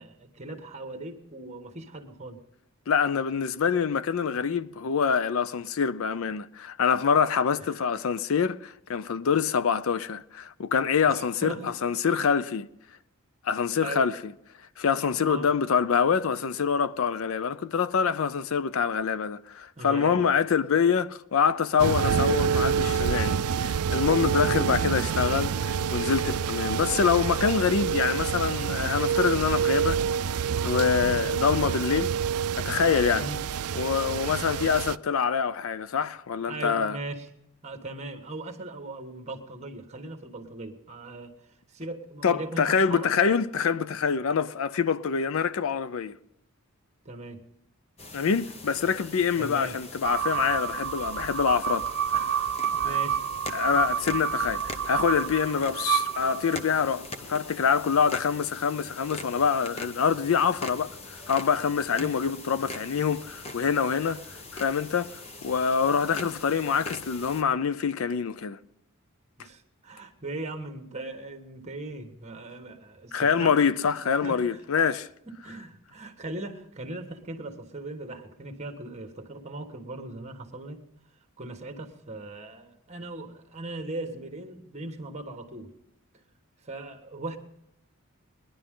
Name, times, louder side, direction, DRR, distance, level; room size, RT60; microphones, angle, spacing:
voice 1, 0.0-2.4 7.6-7.9 11.1-11.7 13.5-14.1 15.2-15.5 19.8-20.3 24.4-24.9 33.1-33.4 36.5-37.3 37.6-41.3 41.7-43.1 47.0-47.4 49.4-49.8 52.1-53.2 53.5-53.8 62.0-62.3 62.8-62.9 63.9-64.2 69.4-73.6 74.2-74.6 75.3-80.8 81.4-85.7 86.6-87.4, right 2 dB, 30° right, 1.5 m, -39 dB
voice 2, 2.9-12.7 13.4-14.3 14.8-30.0 30.3-32.1 32.5-33.3 33.7-37.0 42.2-46.2 48.1-51.9 52.8-53.0 53.5-64.2 64.5-68.6 73.1-75.1, left 6 dB, 65° left, 0.5 m, -25 dB
sound 1, 21.8-35.0, right 7 dB, 85° right, 0.4 m, -27 dB
sound 2, 48.0-67.4, left 2 dB, 30° left, 1.0 m, -42 dB
sound 3, 50.0-56.8, right 8 dB, 55° right, 0.7 m, -29 dB
20.5 x 11.5 x 3.8 m
head